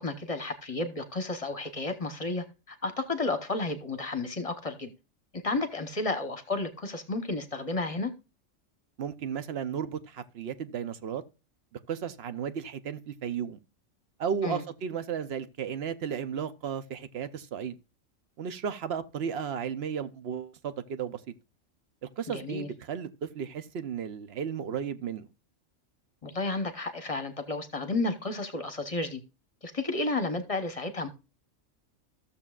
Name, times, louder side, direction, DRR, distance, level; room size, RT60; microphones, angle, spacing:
voice 1, 0.0-4.9 5.4-8.1 14.4-14.6 22.3-22.7 26.2-29.2 29.6-31.1, left 2 dB, 30° left, 0.9 m, -32 dB
voice 2, 9.0-11.2 11.7-13.6 14.2-17.8 18.4-21.2 22.0-25.3, right 7 dB, 55° right, 0.9 m, -34 dB
14.5 x 7.0 x 2.4 m
omnidirectional pair, 1.3 m